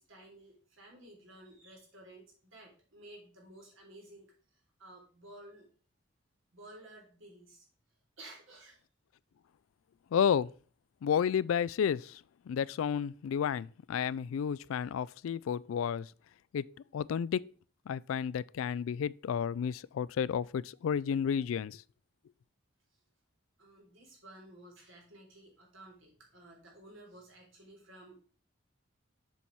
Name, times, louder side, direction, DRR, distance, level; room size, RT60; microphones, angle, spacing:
voice 1, 0.0-5.7 6.5-7.7 8.2-8.8 23.6-28.2, right 1 dB, 75° right, 3.5 m, -54 dB
voice 2, 10.1-10.5 11.0-12.2 12.5-16.1 16.5-16.6 16.9-17.4 17.9-21.8, left 7 dB, 85° left, 0.3 m, -31 dB
7.1 x 5.6 x 4.6 m
head